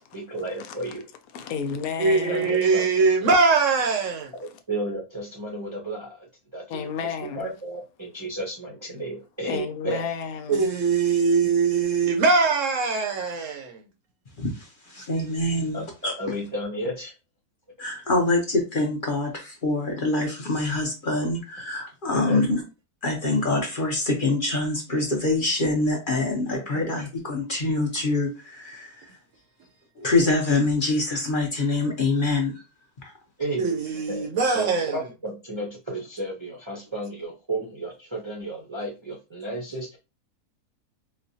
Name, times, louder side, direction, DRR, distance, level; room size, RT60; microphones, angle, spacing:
voice 1, 0.1-1.0 2.3-2.8 4.4-10.1 15.7-15.8 16.2-17.1 22.1-22.4 26.7-26.9 33.4-33.7 34.1-34.3 34.5-40.0, right 1 dB, 35° right, 0.5 m, -33 dB
voice 2, 1.3-2.6 6.7-7.5 9.5-10.7, left 6 dB, 75° left, 1.0 m, -32 dB
voice 3, 2.0-4.3 10.5-13.9 33.6-35.0, right 4 dB, 70° right, 0.8 m, -22 dB
voice 4, 14.4-16.1 17.8-22.6 23.0-29.1 30.0-32.5 33.0-33.1, left 2 dB, 45° left, 0.8 m, -25 dB
4.1 x 2.2 x 2.6 m
omnidirectional pair, 1.6 m